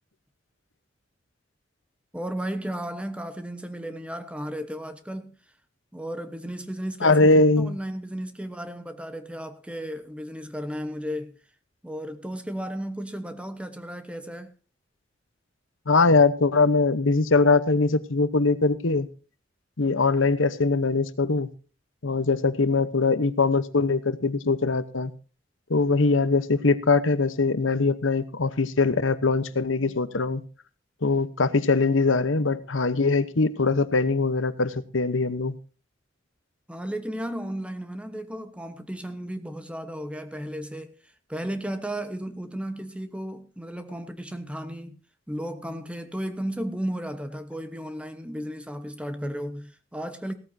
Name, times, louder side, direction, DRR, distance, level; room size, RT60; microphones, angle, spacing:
voice 1, 2.1-5.4 5.9-7.3 7.6-11.4 11.8-14.5 36.7-40.9 41.3-44.9 45.3-50.3, equal, 5° right, 1.1 m, -34 dB
voice 2, 7.0-7.8 15.9-19.1 19.8-21.5 22.0-25.1 25.7-30.4 31.0-35.6, left 3 dB, 90° left, 1.0 m, -22 dB
17.0 x 13.5 x 2.7 m
head